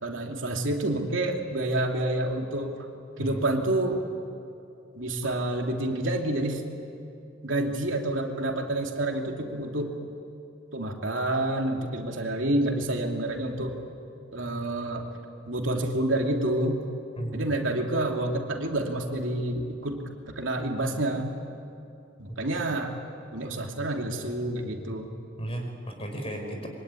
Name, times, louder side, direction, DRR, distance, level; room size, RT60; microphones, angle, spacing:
voice 1, 0.0-2.7 3.2-4.0 4.9-6.6 7.4-9.9 10.7-13.7 14.3-15.1 15.5-16.8 17.3-21.4 22.2-22.9 23.3-25.1, right 1 dB, 75° right, 2 dB, 2.9 m, -28 dB
voice 2, 25.4-26.7, right 1 dB, 30° left, 3 dB, 5.3 m, -34 dB
25.0 x 24.0 x 9.8 m, 2.6 s
head